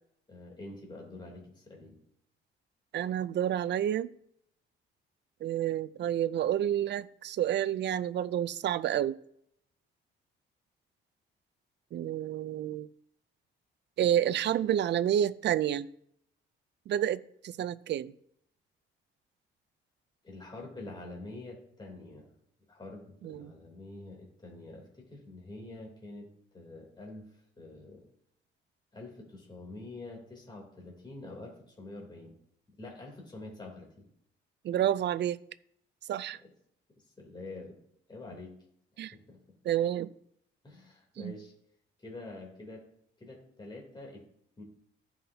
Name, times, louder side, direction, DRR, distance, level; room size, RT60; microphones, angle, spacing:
voice 1, 0.3-2.0 20.2-22.3 22.7-26.3 26.5-27.2 27.6-28.0 28.9-32.3 32.8-34.1 36.4-36.5 37.2-37.8 38.1-38.5 39.1-39.4 40.6-41.5 42.0-42.8 43.2-44.2 44.6-44.7, left 2 dB, 20° left, -1 dB, 3.3 m, -46 dB
voice 2, 2.9-4.1 5.4-9.1 11.9-12.9 14.0-15.9 16.9-18.1 23.2-23.5 34.6-35.4 36.1-36.4 39.0-39.1 39.6-40.1 41.2-41.3, right 11 dB, 60° right, 17 dB, 0.5 m, -29 dB
15.0 x 5.7 x 2.8 m, 0.70 s
cardioid pair, 90°, 20 cm